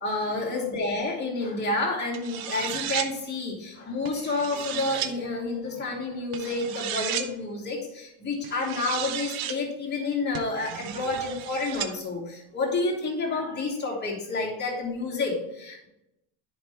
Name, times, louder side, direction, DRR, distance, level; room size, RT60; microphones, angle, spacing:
voice 1, 0.0-15.9, left 3 dB, 20° left, -4 dB, 2.5 m, -29 dB
sound 1, 2.1-3.1 4.1-5.1 6.3-7.3 8.4-9.6 10.3-11.9, right 10 dB, 45° right, 0.7 m, -34 dB
10.0 x 5.6 x 3.3 m, 0.84 s
cardioid pair, 160°, 50 cm